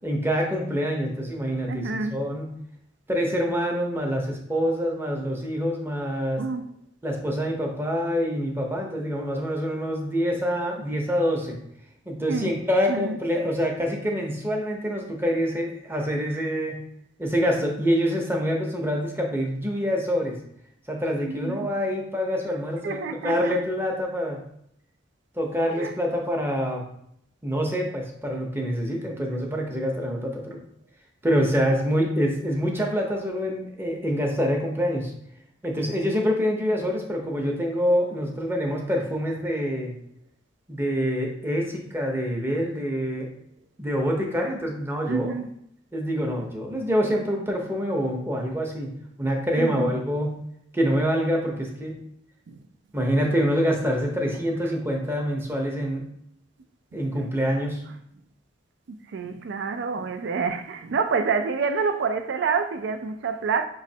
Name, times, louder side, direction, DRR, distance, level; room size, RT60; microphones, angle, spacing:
voice 1, 0.0-2.6 3.1-6.4 7.0-11.6 12.1-16.9 17.2-20.4 20.9-24.4 25.4-26.8 27.4-30.6 31.2-35.1 35.6-39.9 40.7-43.3 43.8-45.3 45.9-48.9 49.2-50.4 50.7-52.0 52.9-56.1 56.9-57.8, equal, 10° right, 0.7 m, -26 dB
voice 2, 1.7-2.2 6.4-6.6 12.3-12.5 12.9-13.5 21.2-21.7 22.8-23.6 25.7-25.9 45.1-45.5 49.6-49.9 52.5-52.6 56.9-57.0 58.9-63.7, right 5 dB, 65° right, 0.4 m, -28 dB
5.0 x 3.0 x 2.7 m
head